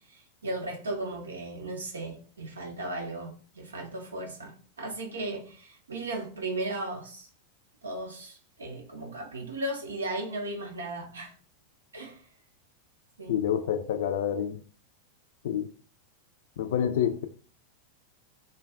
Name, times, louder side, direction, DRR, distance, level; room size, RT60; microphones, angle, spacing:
voice 1, 0.4-7.3 7.8-11.3 11.9-12.2 13.2-13.4, right 2 dB, 70° right, 0.6 m, -36 dB
voice 2, 13.3-14.6 15.4-15.7 16.6-17.3, left 9 dB, 55° left, 0.3 m, -28 dB
2.3 x 2.2 x 3.4 m
figure-of-eight pair, 90°, 0 cm